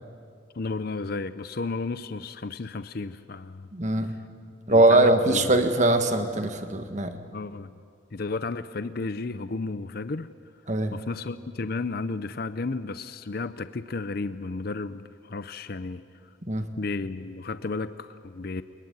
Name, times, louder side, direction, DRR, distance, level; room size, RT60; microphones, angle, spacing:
voice 1, 0.5-3.7 4.7-5.5 7.3-7.7 8.1-10.3 10.9-16.0 16.8-18.6, left 3 dB, 50° left, 13 dB, 0.6 m, -33 dB
voice 2, 3.7-4.1 4.7-7.2 10.7-11.0 16.5-16.7, right 2 dB, 35° right, 8 dB, 1.5 m, -21 dB
23.0 x 22.0 x 9.7 m, 2.3 s
head